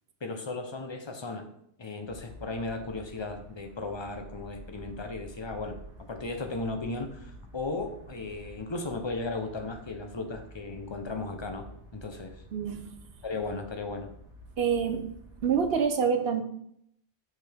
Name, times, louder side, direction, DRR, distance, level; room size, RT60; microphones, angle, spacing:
voice 1, 0.2-1.5 1.8-5.8 6.1-11.7 11.9-12.4 13.2-14.1, left 3 dB, 30° left, 5 dB, 0.7 m, -36 dB
sound 1, 2.0-15.8, right 1 dB, 90° right, 2.1 m, -49 dB
voice 2, 12.5-12.9 14.6-15.0 15.4-16.4, right 6 dB, 65° right, 7 dB, 0.9 m, -26 dB
5.9 x 5.5 x 3.5 m, 0.71 s
omnidirectional pair, 1.1 m